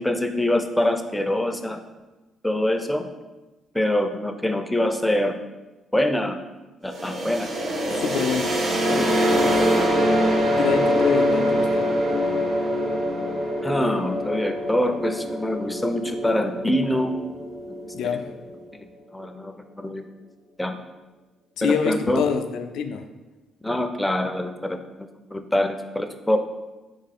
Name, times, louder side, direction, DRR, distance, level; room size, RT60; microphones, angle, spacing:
voice 1, 0.0-1.8 2.4-3.1 3.7-5.3 5.9-6.4 6.8-8.0 8.9-9.4 9.7-9.8 13.6-17.2 18.0-18.2 19.1-20.0 20.6-20.8 21.6-22.2 23.6-26.4, left 1 dB, 5° left, 7 dB, 0.4 m, -25 dB
sound 1, 6.9-18.6, equal, 55° right, 0.8 m, -24 dB
voice 2, 8.0-8.6 10.6-11.9 17.9-18.3 21.6-23.1, left 6 dB, 85° left, 7 dB, 0.3 m, -26 dB
3.5 x 3.2 x 4.1 m, 1.1 s
cardioid pair, 90°, 0 cm